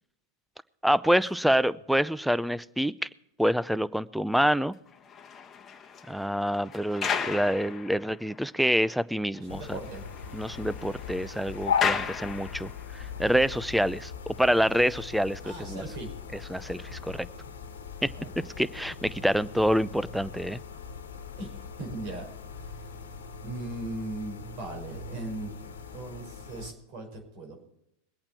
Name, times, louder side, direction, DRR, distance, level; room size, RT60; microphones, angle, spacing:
voice 1, 0.8-3.1 3.4-4.7 6.1-9.8 10.3-15.8 16.5-17.3 18.0-18.1 18.4-20.6, equal, ahead, 17 dB, 0.5 m, -27 dB
sound 1, 4.9-8.4 8.9-9.0 9.3-9.4 9.7-13.0, left 6 dB, 30° left, 1.3 m, -35 dB
voice 2, 9.4-10.0 15.4-16.1 18.2-18.5 21.4-22.2 22.6-22.7 23.4-25.5 25.9-27.7, right 2 dB, 55° right, 4 dB, 5.3 m, -38 dB
sound 2, 9.5-26.7, left 6 dB, 80° left, 1.4 m, -39 dB
22.0 x 8.7 x 4.4 m, 0.81 s
hypercardioid pair, 95°, 0 cm